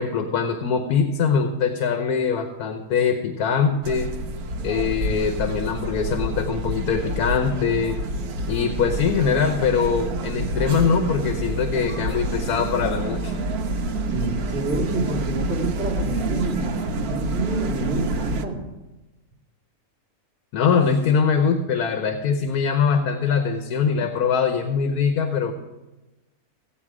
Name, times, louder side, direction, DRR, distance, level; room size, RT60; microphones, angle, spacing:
voice 1, 0.0-4.1 4.6-8.0 8.5-13.3 20.5-25.5, left 6 dB, 80° left, 6 dB, 1.4 m, -22 dB
sound 1, 3.8-18.4, right 2 dB, 75° right, 1.3 m, -28 dB
voice 2, 14.1-18.6, right 2 dB, 40° right, -2 dB, 2.7 m, -28 dB
15.5 x 8.6 x 4.9 m, 1.1 s
omnidirectional pair, 1.6 m